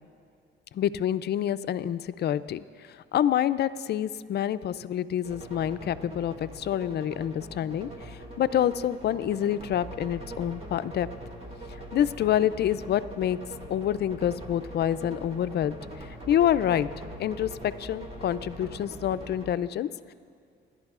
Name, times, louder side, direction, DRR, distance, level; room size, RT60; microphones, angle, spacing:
voice 1, 0.7-2.6 3.1-11.1 11.9-13.4 13.7-15.8 16.3-16.9 17.2-20.1, left 10 dB, 55° left, 15 dB, 0.4 m, -27 dB
sound 1, 5.2-19.5, right 1 dB, 30° right, 2.0 m, -42 dB
26.0 x 11.5 x 2.4 m, 2.3 s
cardioid pair, 90°, 20 cm